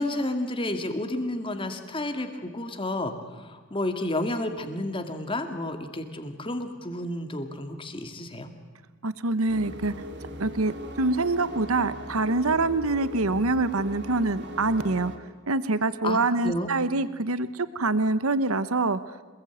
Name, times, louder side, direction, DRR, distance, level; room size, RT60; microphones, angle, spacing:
voice 1, 0.0-8.5 16.0-16.7, left 1 dB, 25° left, 7 dB, 2.3 m, -31 dB
voice 2, 9.0-9.9 10.4-15.1 15.5-19.0, right 3 dB, 75° right, 14 dB, 1.0 m, -25 dB
sound 1, 9.5-15.2, equal, 55° right, 3.1 m, -40 dB
26.5 x 21.5 x 9.4 m, 1.4 s
head